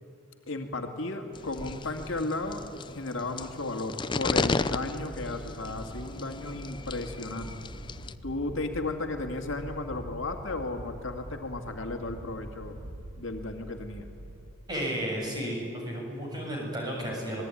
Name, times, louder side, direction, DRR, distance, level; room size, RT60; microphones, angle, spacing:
voice 1, 0.5-7.6 8.2-12.8 13.2-14.0, left 2 dB, 65° left, 4 dB, 2.2 m, -34 dB
sound 1, 1.3-8.1, left 3 dB, 20° left, 0.6 m, -34 dB
sound 2, 4.2-14.5, right 1 dB, 75° right, 1.5 m, -44 dB
voice 2, 14.7-17.4, equal, 20° right, -2 dB, 7.9 m, -33 dB
26.5 x 20.5 x 9.9 m, 2.5 s
head